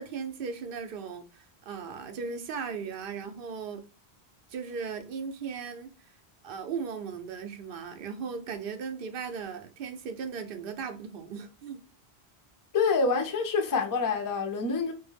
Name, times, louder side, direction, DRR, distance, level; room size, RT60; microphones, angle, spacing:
voice 1, 0.0-3.8 4.5-5.9 6.4-11.8, right 6 dB, 65° right, 0.7 m, -37 dB
voice 2, 12.7-14.9, left 4 dB, 35° left, 0.3 m, -26 dB
2.2 x 2.1 x 3.2 m
omnidirectional pair, 1.1 m